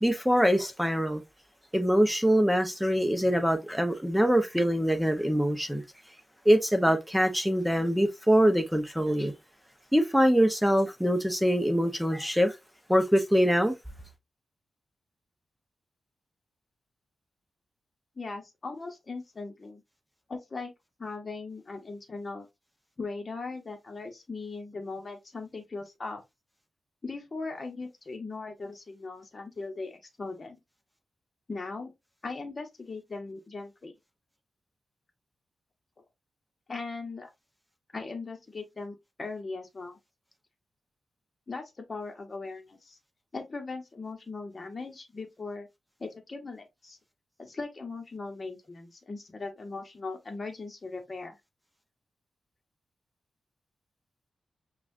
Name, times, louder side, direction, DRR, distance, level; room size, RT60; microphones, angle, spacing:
voice 1, 0.0-1.2 1.7-5.8 6.4-9.3 9.9-12.5 12.9-13.7, equal, ahead, 0.9 m, -24 dB
voice 2, 18.2-19.8 20.3-20.7 21.0-22.5 23.0-26.2 27.0-30.6 31.5-31.9 32.2-33.9 36.7-37.3 37.9-40.0 41.5-43.0 43.3-45.7 46.0-47.0 47.4-51.4, left 3 dB, 40° left, 1.1 m, -39 dB
5.5 x 2.4 x 2.6 m
wide cardioid pair, 100°, 0 cm